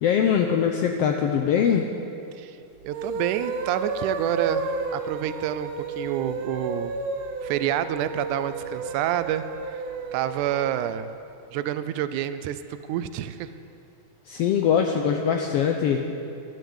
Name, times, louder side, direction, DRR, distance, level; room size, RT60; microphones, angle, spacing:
voice 1, 0.0-1.9 14.3-16.1, left 8 dB, 80° left, 4 dB, 1.4 m, -22 dB
sound 1, 2.8-11.0, right 4 dB, 70° right, 1.9 m, -32 dB
voice 2, 2.8-7.0 7.4-9.5 9.7-9.8 10.1-11.1 11.5-13.5, right 11 dB, 85° right, 12 dB, 2.1 m, -28 dB
12.0 x 11.5 x 7.9 m, 2.7 s
omnidirectional pair, 3.5 m